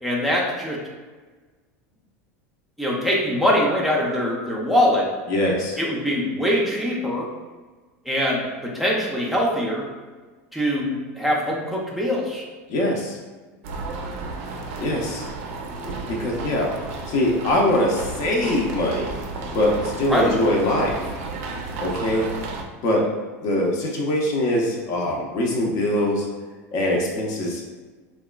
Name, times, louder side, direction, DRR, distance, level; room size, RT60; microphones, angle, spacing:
voice 1, 0.0-0.8 2.8-5.1 5.8-7.3 8.0-9.9 10.5-12.4 20.1-20.4, equal, ahead, -4 dB, 0.5 m, -23 dB
voice 2, 5.3-5.8 12.7-13.2 14.8-15.3 16.1-16.8 17.1-19.1 19.5-21.0 21.8-22.3 22.8-23.1 23.4-26.3 26.7-27.6, left 1 dB, 50° left, -1 dB, 0.6 m, -22 dB
sound 1, 13.6-22.6, right 3 dB, 70° right, 0.4 m, -33 dB
2.9 x 2.3 x 2.2 m, 1.3 s
supercardioid pair, 105°, 8 cm